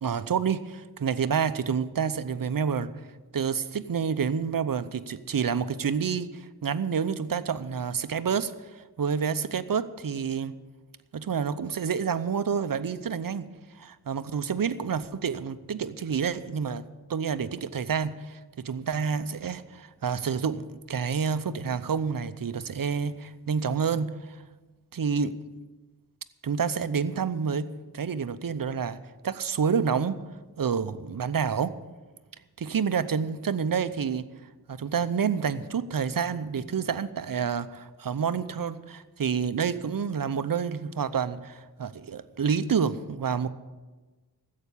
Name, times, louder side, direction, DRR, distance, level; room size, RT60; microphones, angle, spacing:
voice 1, 0.0-2.9 3.3-10.6 11.1-13.5 13.8-16.8 17.1-24.4 24.9-25.3 26.4-27.7 27.9-29.0 29.2-30.2 30.6-31.7 32.6-34.3 34.7-43.5, right 6 dB, 60° right, 13 dB, 0.7 m, -28 dB
13.5 x 8.4 x 8.4 m, 1.2 s
wide cardioid pair, 100°, 39 cm